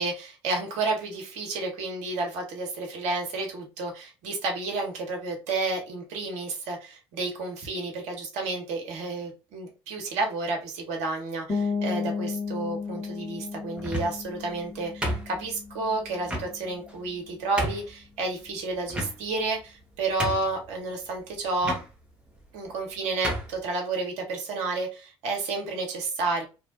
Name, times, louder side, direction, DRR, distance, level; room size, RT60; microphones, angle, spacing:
voice 1, 0.0-21.7 22.5-26.4, right 3 dB, 60° right, 2 dB, 0.9 m, -31 dB
sound 1, 11.5-17.1, left 5 dB, 20° left, 1.2 m, -34 dB
sound 2, 13.8-14.3 15.0-15.7 16.3-16.5 17.1-17.2 17.6-17.9 18.9-19.5 19.8-19.9 20.2-20.7 21.6-21.8 22.7-22.8 23.2-23.5, equal, 5° right, 0.7 m, -31 dB
2.6 x 2.2 x 2.6 m, 0.30 s
figure-of-eight pair, 55°, 14 cm